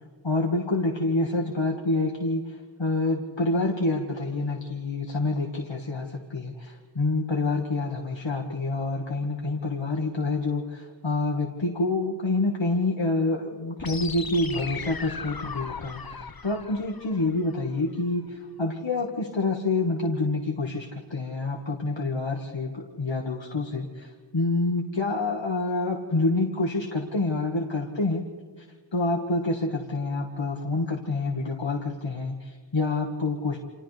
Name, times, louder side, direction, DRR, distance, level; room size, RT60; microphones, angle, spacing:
voice 1, 0.2-28.2 28.6-28.7 28.9-33.6, left 2 dB, 80° left, 1 dB, 1.6 m, -27 dB
sound 1, 13.8-17.8, left 5 dB, 50° left, 0.9 m, -38 dB
29.5 x 27.5 x 3.3 m, 1.5 s
wide cardioid pair, 40°, 44 cm